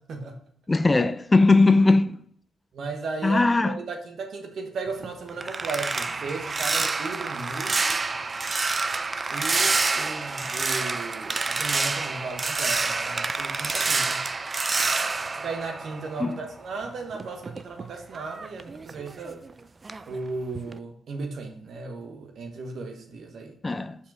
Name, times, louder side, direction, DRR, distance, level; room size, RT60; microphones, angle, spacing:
voice 1, 0.7-2.2 3.2-3.8 16.2-16.4 23.6-24.0, left 3 dB, 30° left, 0.6 m, -19 dB
voice 2, 2.7-7.8 9.3-14.2 15.4-19.4 20.1-23.5, right 3 dB, 70° right, 1.3 m, -35 dB
sound 1, 4.9-16.5 16.8-19.5 19.8-20.2 20.5-20.8, right 3 dB, 40° right, 0.4 m, -28 dB
5.5 x 4.7 x 4.7 m
supercardioid pair, 45°, 0 cm